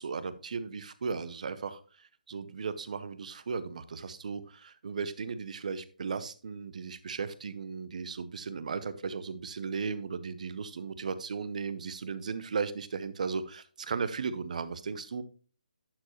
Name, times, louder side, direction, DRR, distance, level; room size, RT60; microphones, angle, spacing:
voice 1, 0.0-15.2, right 5 dB, 55° right, 0.7 m, -36 dB
11.0 x 4.6 x 3.0 m
hypercardioid pair, 160°, 5 cm